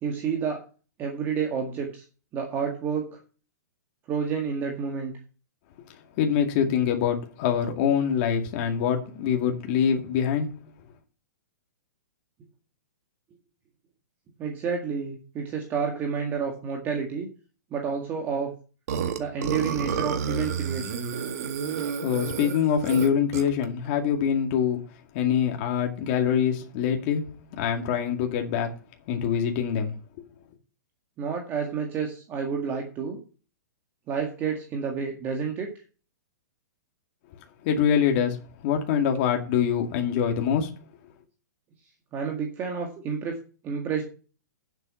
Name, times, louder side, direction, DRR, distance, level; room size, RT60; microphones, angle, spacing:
voice 1, 0.0-0.6 1.0-2.0 2.3-3.2 4.1-5.1 14.4-17.3 17.7-18.5 19.2-21.1 31.2-33.2 34.1-35.7 42.1-43.4 43.6-44.0, right 6 dB, 20° right, 1.9 m, -29 dB
voice 2, 6.2-10.6 21.7-24.8 25.1-28.7 29.1-29.9 37.6-38.4 38.6-40.7, left 8 dB, 35° left, 2.2 m, -24 dB
Burping eructation, 18.9-23.6, right 7 dB, 55° right, 2.0 m, -30 dB
9.7 x 7.9 x 5.6 m
hypercardioid pair, 160°, 10 cm